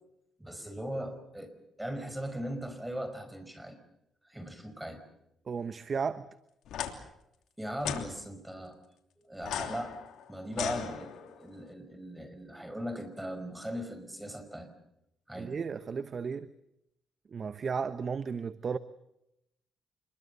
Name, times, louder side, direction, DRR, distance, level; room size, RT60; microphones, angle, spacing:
voice 1, 0.4-3.8 4.2-5.1 7.6-8.8 9.2-10.0 10.3-14.7 15.3-15.6, equal, 10° right, 10 dB, 5.1 m, -39 dB
voice 2, 5.5-6.3 15.3-16.5 17.3-18.8, right 5 dB, 45° right, 13 dB, 1.0 m, -34 dB
sound 1, 6.7-6.9 7.8-8.1 9.4-11.4, left 10 dB, 80° left, 3.1 m, -37 dB
26.5 x 22.5 x 6.8 m, 0.83 s
cardioid pair, 90°, 0 cm